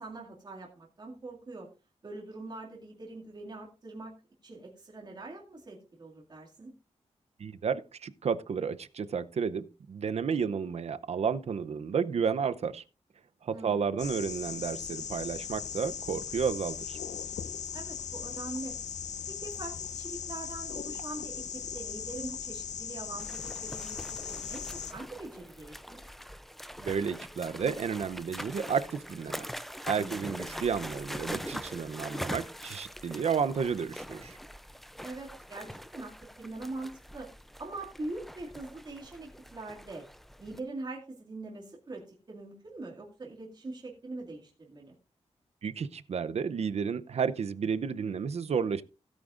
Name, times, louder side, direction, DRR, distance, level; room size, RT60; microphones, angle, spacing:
voice 1, 0.0-1.7 2.0-4.1 4.4-6.7 13.5-14.0 17.7-18.8 19.3-26.1 30.0-30.6 35.0-37.3 37.6-40.1 40.4-44.9, right 2 dB, 35° right, 2.2 m, -43 dB
voice 2, 7.4-12.8 13.4-17.0 26.8-29.5 29.8-34.4 45.6-48.8, right 6 dB, 65° right, 0.7 m, -32 dB
sound 1, 14.0-24.9, left 7 dB, 85° left, 0.7 m, -39 dB
sound 2, 23.2-40.6, equal, ahead, 0.5 m, -43 dB
17.0 x 8.9 x 2.5 m
wide cardioid pair, 175°, 12 cm